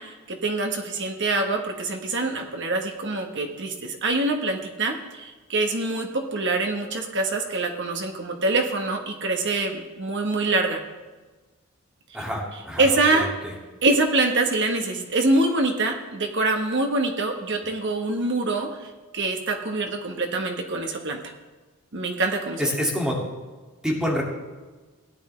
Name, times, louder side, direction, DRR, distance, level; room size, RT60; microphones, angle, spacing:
voice 1, 0.0-10.8 12.8-13.3 13.8-21.2 21.9-22.7, right 2 dB, 55° right, 4 dB, 1.3 m, -25 dB
voice 2, 12.1-12.8 13.1-13.5 22.6-23.2 23.8-24.2, equal, 5° right, -3 dB, 2.4 m, -27 dB
17.0 x 10.5 x 3.3 m, 1.3 s
head